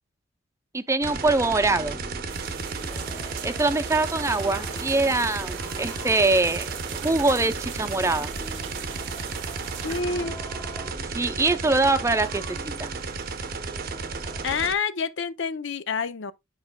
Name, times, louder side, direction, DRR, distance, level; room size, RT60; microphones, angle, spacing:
voice 1, 0.7-2.0 3.4-8.3 11.1-12.9, right 3 dB, 15° right, 0.6 m, -23 dB
sound 1, 1.0-14.7, right 4 dB, 55° right, 0.8 m, -34 dB
sound 2, 1.1-14.5, equal, 15° left, 0.8 m, -43 dB
sound 3, 2.3-10.0, right 9 dB, 90° right, 0.9 m, -41 dB
voice 2, 9.8-10.4 14.4-16.3, left 5 dB, 80° left, 0.6 m, -28 dB
10.0 x 4.9 x 2.2 m
head